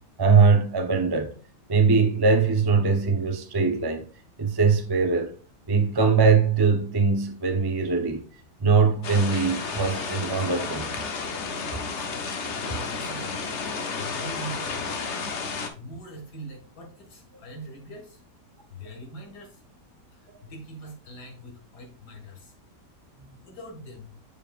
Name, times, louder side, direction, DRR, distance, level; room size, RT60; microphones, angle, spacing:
voice 1, 0.2-1.3 1.7-4.1 4.4-5.3 5.7-8.2 8.6-10.9, right 5 dB, 30° right, 0.4 m, -21 dB
sound 1, 9.0-15.7, left 4 dB, 50° left, 1.0 m, -32 dB
voice 2, 12.6-13.7 13.9-15.1 15.7-18.2 18.7-19.6 20.1-22.5 23.4-24.1, right 1 dB, 70° left, 2.5 m, -42 dB
7.0 x 6.6 x 2.4 m
omnidirectional pair, 1.8 m